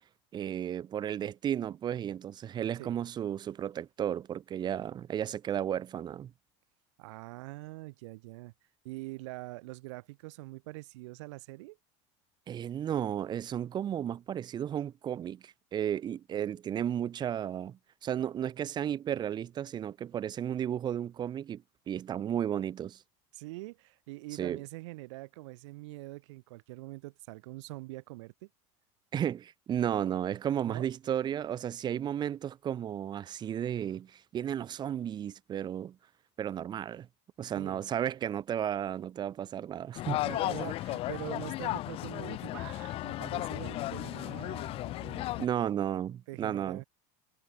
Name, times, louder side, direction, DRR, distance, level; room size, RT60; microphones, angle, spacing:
voice 1, 0.3-6.3 12.5-23.0 24.4-24.6 29.1-36.0 36.4-37.1 37.4-40.2 45.4-46.8, right 10 dB, 30° right, 1.5 m, -33 dB
voice 2, 7.0-8.5 8.8-11.8 23.3-28.5 30.6-30.9 37.5-37.8 40.2-45.5 46.3-46.8, right 22 dB, 85° right, 5.2 m, -44 dB
sound 1, 40.0-45.5, left 16 dB, 40° left, 0.5 m, -35 dB
cardioid pair, 150°, 15 cm